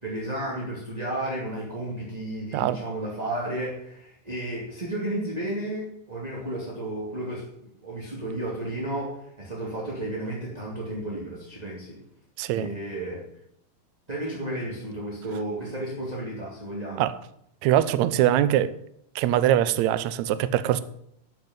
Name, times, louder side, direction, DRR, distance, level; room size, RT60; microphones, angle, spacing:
voice 1, 0.0-7.5 7.8-12.0 12.5-13.2 14.1-17.0, right 1 dB, 15° right, 2.0 m, -32 dB
voice 2, 12.4-12.7 17.0-17.1 17.6-18.8 19.1-20.8, right 12 dB, 85° right, 1.6 m, -22 dB
12.0 x 8.1 x 8.0 m
omnidirectional pair, 4.2 m